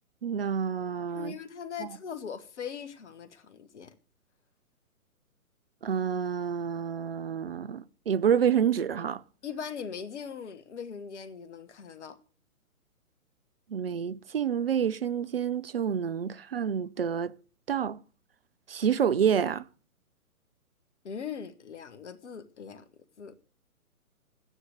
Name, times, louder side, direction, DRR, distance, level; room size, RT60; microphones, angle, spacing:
voice 1, 0.2-1.3 5.8-9.2 13.7-17.3 17.7-18.0 18.7-19.7, right 8 dB, 40° right, 0.6 m, -28 dB
voice 2, 1.1-3.9 9.4-12.2 21.0-22.9 23.2-23.3, left 7 dB, 50° left, 1.5 m, -40 dB
13.0 x 9.8 x 6.5 m
figure-of-eight pair, 135°, 44 cm